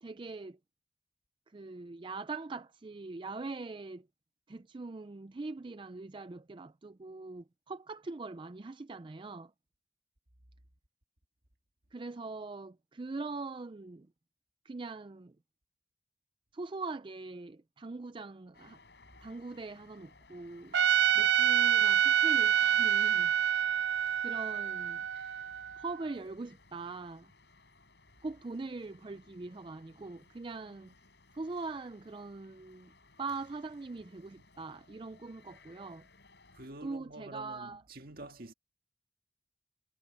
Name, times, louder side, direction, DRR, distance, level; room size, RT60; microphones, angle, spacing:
voice 1, 0.0-0.6 1.5-4.0 4.5-9.5 11.9-14.1 14.7-15.3 16.5-18.8 19.2-20.7 21.1-23.6 24.2-25.0 25.8-27.3 28.2-30.9 31.3-32.9 33.2-36.1 36.8-37.8, right 3 dB, 30° right, 0.4 m, -42 dB
sound 1, 18.5-36.7, left 3 dB, 70° left, 8.0 m, -61 dB
Trumpet, 20.7-25.9, right 9 dB, 80° right, 0.5 m, -27 dB
voice 2, 36.5-38.5, right 2 dB, 55° right, 1.9 m, -47 dB
head